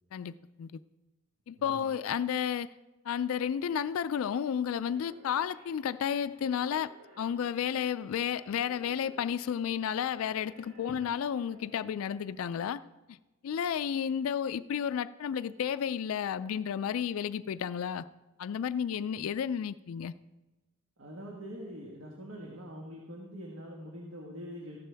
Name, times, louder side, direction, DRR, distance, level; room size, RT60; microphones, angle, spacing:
voice 1, 0.1-0.7 1.5-2.7 3.1-12.8 13.1-13.2 13.4-18.1 18.4-20.1, left 8 dB, 80° left, 15 dB, 0.3 m, -32 dB
voice 2, 1.6-1.9 10.9-11.1 21.0-24.8, equal, 65° right, -2 dB, 1.5 m, -44 dB
sound 1, 4.8-12.4, equal, 85° right, 3.2 m, -59 dB
14.5 x 11.5 x 3.4 m, 1.1 s
head